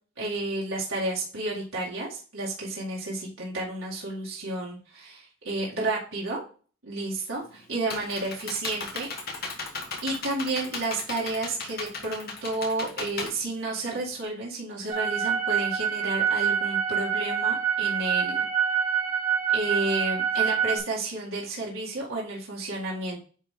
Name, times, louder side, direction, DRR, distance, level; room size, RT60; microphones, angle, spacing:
voice 1, 0.2-6.4 6.8-9.1 10.0-18.5 19.5-23.2, right 2 dB, 70° right, -5 dB, 1.9 m, -31 dB
Computer keyboard, 7.4-14.2, left 3 dB, 50° left, 1.4 m, -37 dB
sound 1, 14.9-20.8, right 8 dB, 30° right, 1.7 m, -26 dB
9.5 x 3.3 x 3.6 m, 0.39 s
head